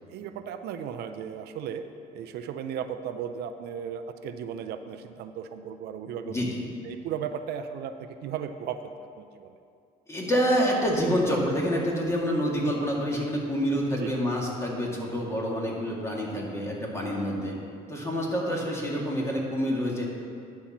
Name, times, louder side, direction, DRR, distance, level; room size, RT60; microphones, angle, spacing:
voice 1, 0.1-1.8 2.1-6.4 6.8-9.6 12.6-12.7 13.9-14.1, right 8 dB, 75° right, 8 dB, 0.5 m, -36 dB
voice 2, 6.2-6.6 10.1-17.5 17.9-20.0, equal, 15° left, -3 dB, 1.8 m, -27 dB
10.0 x 4.3 x 7.2 m, 2.5 s
cardioid pair, 110°, 17 cm